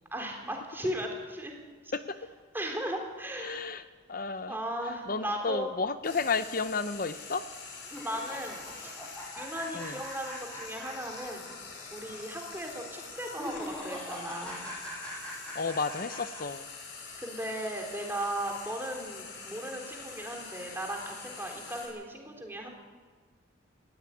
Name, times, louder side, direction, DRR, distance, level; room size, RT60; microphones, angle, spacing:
voice 1, 0.1-1.6 1.8-1.9 2.5-3.7 4.5-5.7 8.0-9.0 9.4-11.5 11.9-14.7 17.2-22.7, right 1 dB, 10° right, 1 dB, 3.8 m, -37 dB
voice 2, 3.4-3.8 4.1-4.5 5.1-7.4 9.7-10.0 15.5-16.7, left 4 dB, 50° left, 11 dB, 0.7 m, -32 dB
Frying (food), 6.0-21.9, left 4 dB, 65° left, 5.6 m, -45 dB
sound 1, 7.8-11.5 11.8-11.9 13.3-16.4, equal, 5° left, 6.1 m, -42 dB
20.0 x 16.0 x 9.9 m, 1.4 s
head